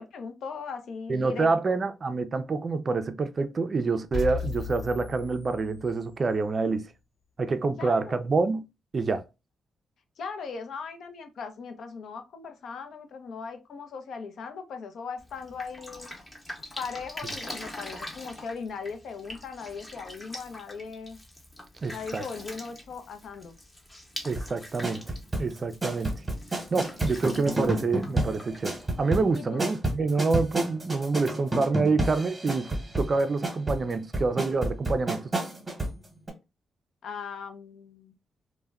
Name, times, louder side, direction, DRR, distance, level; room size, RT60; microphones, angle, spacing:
voice 1, 0.0-1.8 7.8-8.2 10.2-16.1 16.8-21.2 21.9-23.6 29.3-29.6 37.0-38.1, left 5 dB, 70° left, 0.5 m, -39 dB
voice 2, 1.1-6.9 7.4-8.6 8.9-9.3 21.8-22.2 24.2-25.0 25.4-26.2 26.7-35.2, right 4 dB, 40° right, 0.4 m, -27 dB
sound 1, 4.1-6.2, left 4 dB, 55° left, 1.1 m, -35 dB
Drip, 15.2-29.3, left 1 dB, 20° left, 0.7 m, -44 dB
sound 2, 24.3-36.0 36.3-36.4, right 1 dB, 15° right, 0.9 m, -30 dB
2.2 x 2.1 x 3.4 m
cardioid pair, 100°, 0 cm